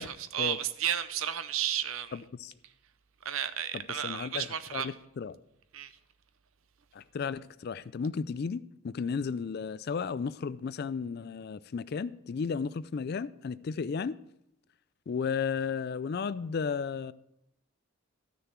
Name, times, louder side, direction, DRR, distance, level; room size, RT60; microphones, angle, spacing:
voice 1, 0.0-2.2 3.2-4.9 5.7-5.9, right 10 dB, 75° right, 0.7 m, -33 dB
voice 2, 2.1-2.5 3.7-5.4 6.9-14.2 15.1-17.1, left 5 dB, 50° left, 0.3 m, -34 dB
13.0 x 6.6 x 4.5 m
head